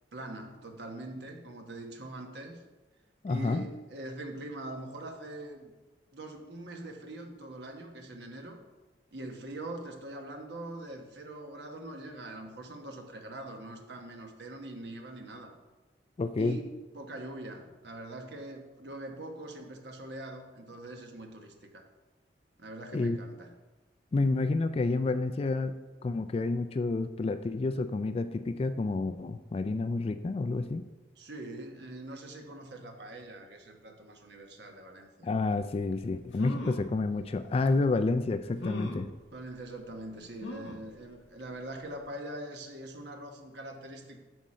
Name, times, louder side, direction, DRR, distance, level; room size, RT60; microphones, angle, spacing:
voice 1, 0.1-2.6 3.3-5.7 6.1-8.6 9.1-15.5 16.4-21.8 22.6-23.5 31.2-35.3 39.3-44.2, right 1 dB, 65° right, 3 dB, 1.2 m, -43 dB
voice 2, 3.2-3.6 16.2-16.6 22.9-23.2 24.1-25.8 26.0-30.8 35.2-39.1, left 3 dB, 35° left, 11 dB, 0.3 m, -29 dB
sound 1, 35.9-36.0 36.3-36.9 37.7-37.8 38.6-39.1 40.4-40.9 41.4-41.5 41.8-41.9, left 2 dB, 75° left, 1.1 m, -38 dB
9.1 x 6.2 x 4.3 m, 1.2 s
head